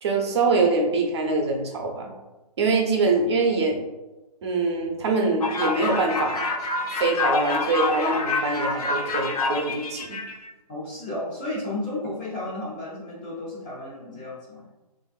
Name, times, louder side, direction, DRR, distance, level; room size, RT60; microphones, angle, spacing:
voice 1, 0.0-2.1 2.6-3.8 4.4-6.5 6.9-10.2, right 3 dB, 45° right, 1 dB, 0.6 m, -24 dB
sound 1, 5.4-10.5, left 3 dB, 75° left, 0.5 m, -27 dB
voice 2, 10.7-14.6, left 2 dB, 15° left, -7 dB, 0.3 m, -33 dB
3.3 x 2.5 x 2.3 m, 1.1 s
hypercardioid pair, 145°, 20 cm